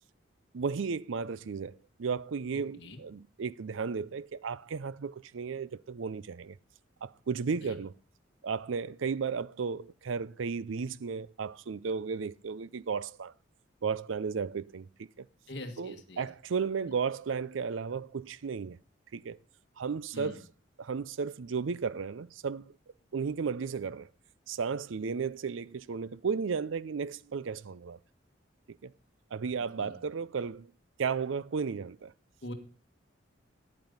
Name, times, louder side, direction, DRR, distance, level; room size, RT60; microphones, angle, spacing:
voice 1, 0.5-6.6 7.0-7.9 8.4-13.3 13.8-15.3 15.8-18.8 19.1-19.4 19.8-20.4 20.8-22.7 23.1-24.1 24.5-28.0 28.8-28.9 29.3-30.7 31.0-32.1, right 5 dB, 80° right, 0.5 m, -34 dB
voice 2, 15.5-16.3 20.1-20.4 29.8-30.0 32.4-32.5, left 1 dB, 60° left, 1.8 m, -43 dB
9.8 x 8.9 x 5.4 m
head